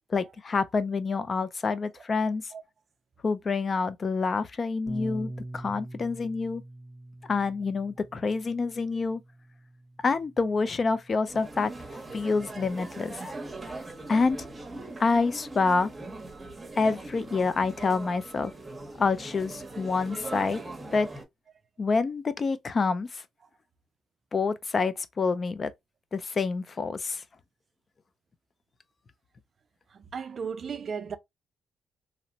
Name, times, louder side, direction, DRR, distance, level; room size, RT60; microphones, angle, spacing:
voice 1, 0.1-2.5 3.2-6.6 7.3-9.2 10.0-11.7 12.1-13.2 14.1-14.4 15.0-15.9 16.8-18.5 19.0-20.6 20.9-21.1 21.8-23.2 24.3-25.7 26.1-27.2, left 4 dB, 40° left, 0.4 m, -27 dB
Bass guitar, 4.9-11.1, right 1 dB, 10° left, 0.8 m, -43 dB
sound 1, 11.3-21.2, right 2 dB, 25° right, 0.8 m, -41 dB
voice 2, 29.9-31.2, right 6 dB, 45° right, 0.4 m, -36 dB
2.9 x 2.0 x 2.6 m
cardioid pair, 90°, 0 cm